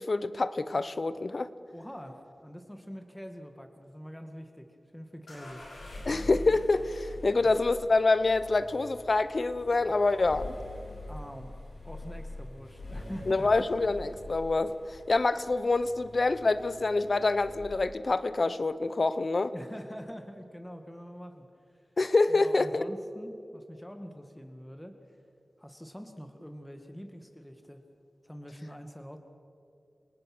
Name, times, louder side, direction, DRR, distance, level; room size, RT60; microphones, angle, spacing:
voice 1, 0.0-1.5 6.1-10.5 13.3-19.5 22.0-22.8, left 3 dB, 60° left, 14 dB, 0.9 m, -26 dB
voice 2, 1.7-4.7 4.9-5.7 11.1-11.5 11.8-13.5 19.5-21.5 21.7-21.9 22.3-25.2 25.6-27.8 28.2-29.2, equal, 10° left, 6 dB, 2.0 m, -44 dB
sound 1, 5.3-18.1, left 2 dB, 90° left, 5.5 m, -44 dB
28.5 x 18.5 x 6.2 m, 2.5 s
cardioid pair, 40°, 0 cm